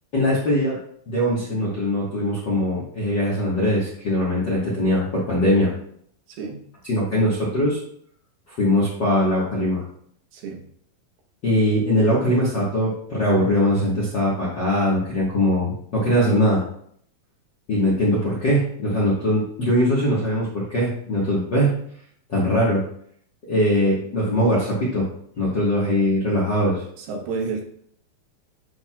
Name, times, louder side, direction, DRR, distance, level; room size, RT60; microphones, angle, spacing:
voice 1, 0.1-0.8 1.1-5.7 6.9-7.8 8.5-9.8 11.4-16.6 17.7-21.7 22.3-22.8 23.5-25.1 25.4-26.8, equal, 70° left, -7 dB, 1.0 m, -21 dB
voice 2, 6.3-6.6 10.3-10.6 27.0-27.7, right 4 dB, 90° right, 2 dB, 3.1 m, -30 dB
12.0 x 4.6 x 2.3 m, 0.65 s
omnidirectional pair, 4.3 m